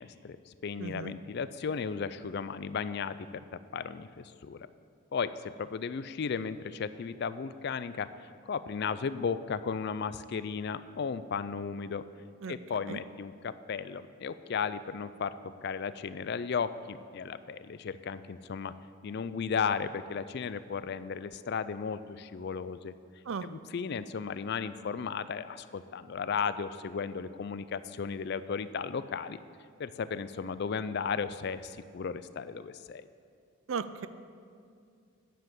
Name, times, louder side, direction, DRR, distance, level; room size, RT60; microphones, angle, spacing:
voice 1, 0.0-3.4 3.7-4.6 5.1-12.0 12.5-18.7 19.0-22.9 23.4-29.4 29.8-33.1, left 6 dB, 50° left, 14 dB, 0.3 m, -35 dB
voice 2, 0.8-1.1 12.4-12.5 12.9-13.0 23.3-23.5 33.7-34.1, right 5 dB, 65° right, 13 dB, 0.4 m, -35 dB
9.2 x 7.4 x 7.6 m, 2.3 s
head